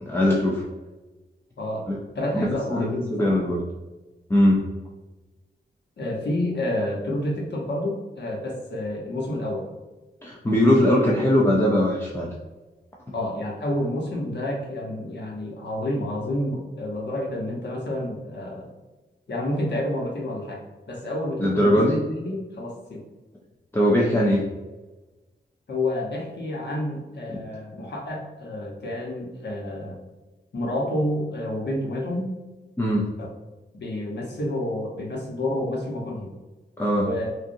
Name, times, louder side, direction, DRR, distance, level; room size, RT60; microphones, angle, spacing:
voice 1, 0.0-0.6 1.9-2.0 2.3-3.6 4.3-4.7 10.2-12.3 21.4-22.0 23.7-24.5 32.8-33.1 36.8-37.1, left 1 dB, 15° left, -3 dB, 0.5 m, -21 dB
voice 2, 1.6-1.9 2.1-3.3 6.0-9.7 13.1-18.7 19.3-21.8 22.1-23.0 25.7-30.0 30.5-32.3 33.2-33.3 33.7-36.3 36.9-37.3, left 1 dB, 70° left, -1 dB, 1.1 m, -29 dB
6.3 x 2.5 x 2.6 m, 1.2 s
wide cardioid pair, 140°, 18 cm